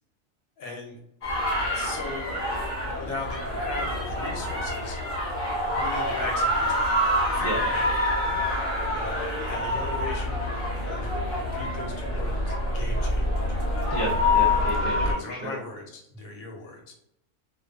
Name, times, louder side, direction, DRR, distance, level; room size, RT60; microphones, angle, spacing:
voice 1, 0.6-1.0 1.7-2.3 2.9-5.0 5.7-6.9 7.3-8.1 8.9-10.4 10.7-13.6 15.1-16.9, left 3 dB, 80° left, 1 dB, 1.1 m, -38 dB
sound 1, 1.2-15.1, left 1 dB, 45° left, 0.9 m, -26 dB
voice 2, 13.9-15.5, equal, 65° right, -6 dB, 0.4 m, -32 dB
2.6 x 2.3 x 2.3 m, 0.76 s
omnidirectional pair, 1.5 m